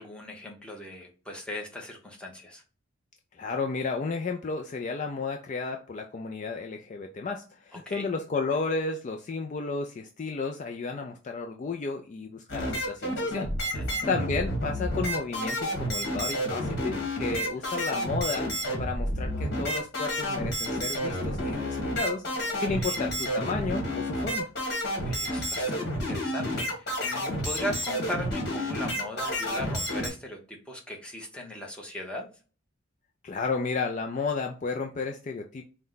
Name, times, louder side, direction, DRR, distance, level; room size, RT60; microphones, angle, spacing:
voice 1, 0.0-2.6 7.7-8.1 13.7-14.1 21.4-22.3 22.7-23.0 25.0-32.3, left 1 dB, 5° left, 0 dB, 0.8 m, -39 dB
voice 2, 3.4-13.5 14.1-18.5 18.8-24.5 33.2-35.6, left 4 dB, 35° left, 3 dB, 0.3 m, -32 dB
sound 1, 12.5-30.1, equal, 50° left, 1.5 m, -30 dB
4.4 x 2.1 x 3.8 m, 0.37 s
head